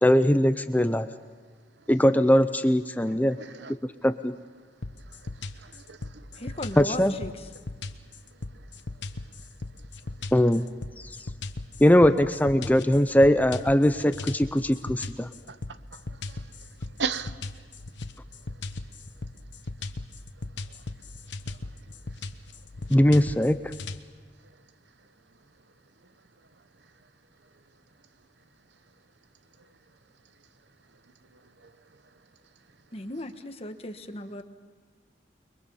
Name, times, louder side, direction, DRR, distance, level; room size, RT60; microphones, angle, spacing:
voice 1, 0.0-1.1 1.9-3.4 4.0-4.4 6.8-7.1 10.3-10.7 11.0-11.1 11.8-15.3 22.9-23.6, equal, 10° left, 10 dB, 0.6 m, -21 dB
voice 2, 3.4-3.7 5.0-6.6 8.3-8.7 10.2-10.3 15.5-16.7 17.0-17.5 20.7-20.8 21.5-21.7 29.6-29.7 31.3-31.7, right 6 dB, 80° right, 13 dB, 0.9 m, -39 dB
sound 1, 4.8-24.0, left 2 dB, 90° left, 1.0 m, -38 dB
voice 3, 6.4-7.3 32.9-34.4, left 1 dB, 35° left, 7 dB, 1.3 m, -37 dB
29.0 x 22.5 x 5.6 m, 1.5 s
head